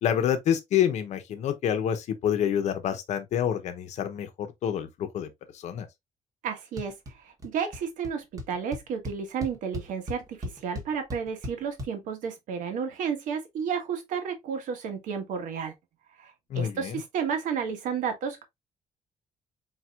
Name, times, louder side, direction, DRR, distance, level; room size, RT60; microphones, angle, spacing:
voice 1, 0.0-5.9 16.5-17.0, left 9 dB, 60° left, 0.8 m, -28 dB
voice 2, 6.4-6.9 7.2-15.7 16.2-18.4, right 7 dB, 75° right, 1.4 m, -32 dB
sound 1, 6.8-7.1 7.4-8.1 8.4-11.9, left 1 dB, 25° right, 1.1 m, -37 dB
4.4 x 4.0 x 2.4 m
cardioid pair, 165°, 13 cm